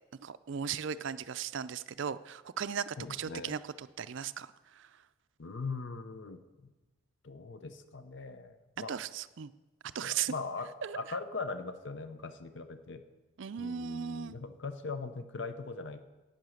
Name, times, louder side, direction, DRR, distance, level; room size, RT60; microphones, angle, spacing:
voice 1, 0.2-4.9 8.9-9.5 9.9-10.3 10.8-11.0 13.4-14.3, right 8 dB, 55° right, 14 dB, 0.4 m, -37 dB
voice 2, 3.0-3.5 5.4-6.7 7.2-9.0 10.0-13.0 13.6-16.1, left 4 dB, 55° left, 10 dB, 0.7 m, -40 dB
10.5 x 8.9 x 6.5 m, 1.1 s
head